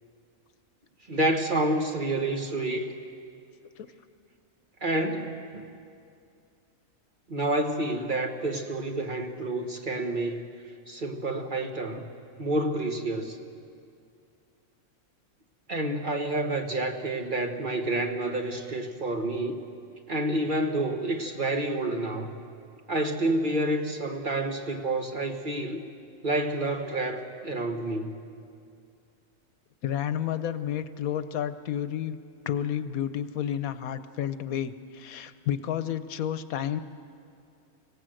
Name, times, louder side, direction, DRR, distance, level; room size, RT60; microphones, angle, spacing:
voice 1, 1.1-2.9 4.8-5.6 7.3-10.4 10.9-12.1 12.4-13.4 15.7-19.6 20.1-22.4 22.9-25.8 26.2-28.2, right 1 dB, 35° right, 4 dB, 1.4 m, -29 dB
voice 2, 29.8-32.2 32.5-36.8, left 10 dB, 80° left, 12 dB, 1.2 m, -31 dB
25.5 x 17.0 x 7.7 m, 2.4 s
omnidirectional pair, 1.5 m